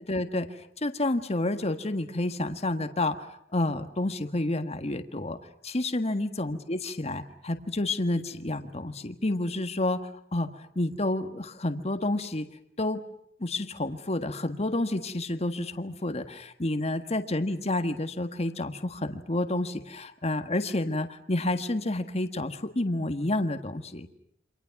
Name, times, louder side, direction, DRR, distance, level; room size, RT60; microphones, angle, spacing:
voice 1, 0.1-5.4 5.6-12.5 12.8-13.0 13.4-24.1, left 2 dB, 35° left, 8 dB, 1.7 m, -30 dB
29.0 x 26.5 x 6.0 m, 0.70 s
head